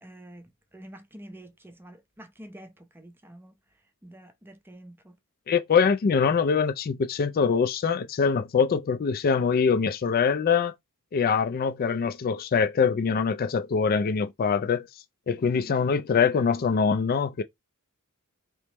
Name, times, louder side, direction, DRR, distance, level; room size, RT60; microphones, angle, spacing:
voice 1, 0.0-3.5 4.0-5.2 15.5-15.9, right 1 dB, 10° right, 0.5 m, -47 dB
voice 2, 5.5-10.7 11.1-14.9 15.3-17.4, left 6 dB, 45° left, 0.4 m, -23 dB
4.2 x 3.0 x 3.4 m
head